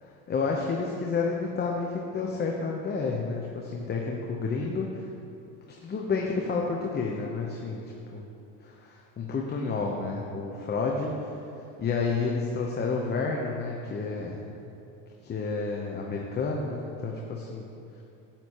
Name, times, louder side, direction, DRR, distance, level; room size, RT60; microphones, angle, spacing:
voice 1, 0.3-5.1 5.8-8.3 8.6-11.4 11.8-14.4 15.2-17.7, left 4 dB, 25° left, -1 dB, 0.8 m, -30 dB
10.0 x 8.3 x 3.0 m, 2.8 s
supercardioid pair, 100°, 40 cm